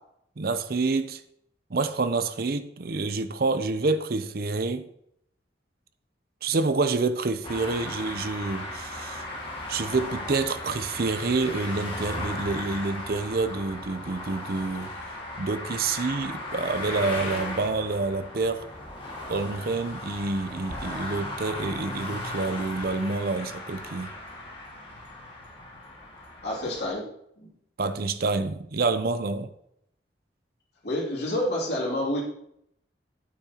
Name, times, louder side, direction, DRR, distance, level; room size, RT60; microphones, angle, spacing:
voice 1, 0.4-1.2 1.7-4.9 6.4-9.2 9.7-15.0 15.4-18.7 19.3-24.1 27.8-29.5, right 3 dB, 55° right, 0.6 m, -28 dB
sound 1, 7.4-26.9, left 1 dB, 30° left, 1.9 m, -37 dB
voice 2, 26.4-27.1 27.4-27.5 30.8-32.2, left 1 dB, 65° left, 2.7 m, -28 dB
8.9 x 8.5 x 2.9 m
head